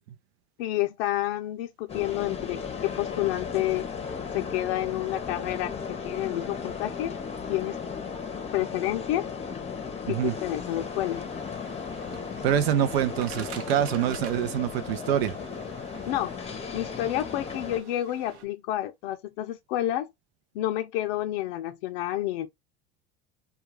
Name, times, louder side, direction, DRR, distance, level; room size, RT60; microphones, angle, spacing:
voice 1, 0.6-3.9 4.3-7.2 7.5-7.8 8.5-9.3 10.1-11.3 16.0-16.4 16.7-20.1 20.5-22.5, left 14 dB, 80° left, 0.5 m, -29 dB
sound 1, 1.9-17.8, left 6 dB, 20° left, 0.7 m, -36 dB
sound 2, 10.3-18.4, right 7 dB, 50° right, 0.6 m, -48 dB
voice 2, 12.4-15.4, right 10 dB, 90° right, 0.5 m, -25 dB
2.3 x 2.2 x 3.0 m
supercardioid pair, 105°, 30 cm